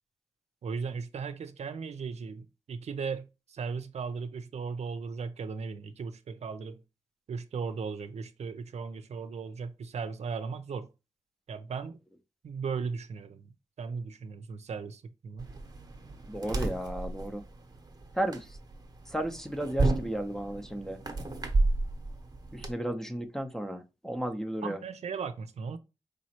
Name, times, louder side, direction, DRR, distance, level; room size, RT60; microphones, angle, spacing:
voice 1, 0.6-6.8 7.3-10.9 11.5-12.0 12.4-15.5 24.6-25.8, right 5 dB, 70° right, 0.5 m, -37 dB
sound 1, 15.4-22.7, right 2 dB, 35° right, 0.9 m, -32 dB
voice 2, 16.3-17.4 18.2-18.4 19.1-21.0 22.5-24.8, right 1 dB, 5° left, 0.7 m, -34 dB
5.0 x 3.0 x 2.8 m
cardioid pair, 80°, 12 cm